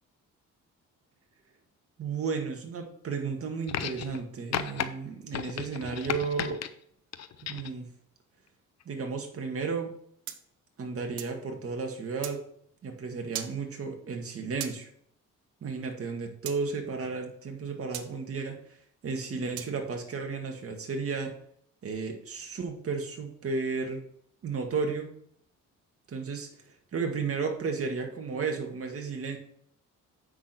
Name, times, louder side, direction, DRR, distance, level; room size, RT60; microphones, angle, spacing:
voice 1, 2.0-6.6 7.4-7.9 8.9-9.9 10.8-12.4 12.8-14.9 15.6-18.6 19.0-21.3 21.8-24.0 24.4-25.1 26.1-26.5 26.9-29.4, right 4 dB, 50° right, 3 dB, 2.0 m, -33 dB
sound 1, 3.7-4.2 4.5-4.9 5.3-6.7 7.1-7.8 8.8-8.9, left 10 dB, 60° left, 0.7 m, -34 dB
sound 2, 10.3-11.4 12.2-12.4 13.3-13.6 14.6-14.8 16.5-16.6 17.9-18.1 19.6-19.8, right 11 dB, 85° right, 0.9 m, -38 dB
8.0 x 6.2 x 4.5 m, 0.65 s
cardioid pair, 90°, 30 cm